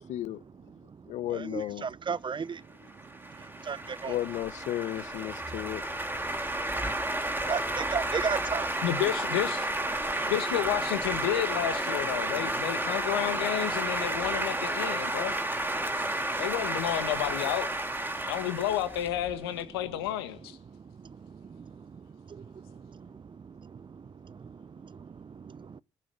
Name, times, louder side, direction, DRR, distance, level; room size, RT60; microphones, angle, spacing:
voice 1, 0.1-0.4 1.1-1.9 4.1-5.8, left 13 dB, 70° left, 0.8 m, -33 dB
voice 2, 0.7-2.7 3.2-4.2 6.2-6.7 7.0-8.8 10.1-10.3 15.9-16.4 18.1-18.3 20.7-25.8, right 6 dB, 40° right, 0.7 m, -38 dB
sound 1, 2.9-19.6, right 1 dB, 15° right, 3.9 m, -32 dB
voice 3, 8.8-9.7 10.3-15.4 16.4-17.7 18.3-20.6, left 12 dB, 85° left, 1.7 m, -31 dB
20.0 x 7.5 x 7.9 m
hypercardioid pair, 40°, 12 cm